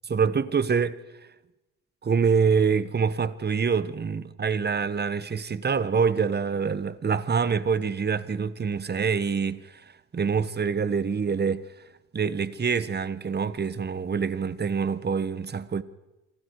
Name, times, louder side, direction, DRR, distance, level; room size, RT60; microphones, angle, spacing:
voice 1, 0.1-1.0 2.0-11.7 12.1-15.8, right 6 dB, 35° right, 1.4 m, -26 dB
29.0 x 26.0 x 4.9 m
cardioid pair, 90°, 30 cm